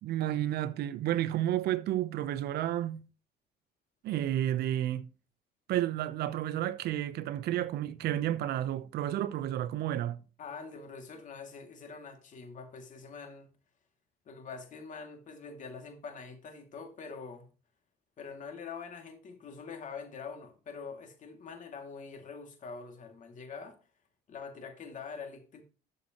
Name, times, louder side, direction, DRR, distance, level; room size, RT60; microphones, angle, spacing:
voice 1, 0.0-3.0 4.0-5.1 5.7-10.2, right 12 dB, 70° right, 0.8 m, -31 dB
voice 2, 10.4-13.5 14.3-17.5 18.2-23.8 24.3-25.6, left 5 dB, 50° left, 2.5 m, -44 dB
13.0 x 6.6 x 3.0 m
cardioid pair, 110°, 17 cm